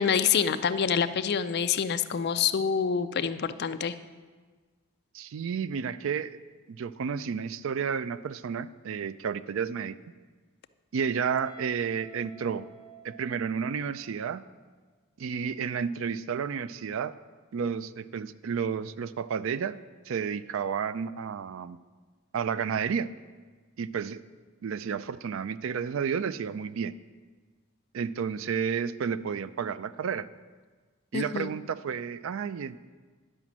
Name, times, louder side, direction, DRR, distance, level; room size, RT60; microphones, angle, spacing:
voice 1, 0.0-3.9 31.1-31.5, left 7 dB, 50° left, 10 dB, 0.4 m, -26 dB
voice 2, 5.1-6.4 6.7-10.0 10.9-12.7 13.0-14.4 15.2-17.1 17.5-19.8 20.1-21.8 22.3-23.1 23.8-24.2 24.6-26.9 27.9-30.3 31.1-32.8, right 6 dB, 65° right, 15 dB, 0.4 m, -31 dB
Guitar, 11.5-14.3, right 4 dB, 90° right, 2.1 m, -53 dB
11.0 x 5.0 x 7.3 m, 1.4 s
head